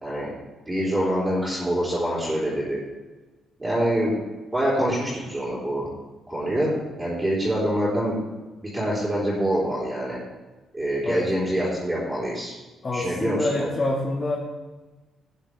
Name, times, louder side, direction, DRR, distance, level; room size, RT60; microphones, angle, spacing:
voice 1, 0.7-2.8 3.6-4.2 4.5-5.9 6.3-6.7 7.0-8.2 8.7-10.2 10.7-12.5 12.9-13.7, right 1 dB, 15° right, -9 dB, 4.2 m, -25 dB
voice 2, 12.8-14.4, left 2 dB, 35° left, -2 dB, 1.8 m, -26 dB
13.0 x 9.3 x 3.5 m, 1.2 s
cardioid pair, 90°, 0 cm